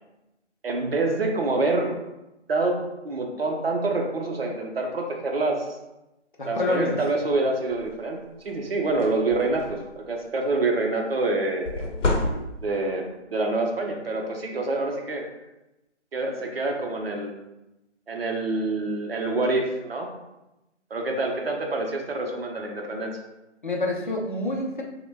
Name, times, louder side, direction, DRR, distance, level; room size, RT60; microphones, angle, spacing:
voice 1, 0.6-2.0 2.5-2.8 3.0-5.7 6.5-8.2 8.4-11.9 12.6-15.2 16.1-17.3 18.1-20.1 20.9-23.2, right 2 dB, 55° right, 2 dB, 0.6 m, -26 dB
voice 2, 6.4-7.0 23.6-24.8, left 2 dB, 45° left, -1 dB, 0.5 m, -27 dB
sound 1, 7.7-8.0 8.4-8.6 8.9-10.0 11.6-12.9, left 2 dB, 85° left, 0.7 m, -28 dB
3.4 x 2.1 x 3.2 m, 0.96 s
figure-of-eight pair, 175°, 36 cm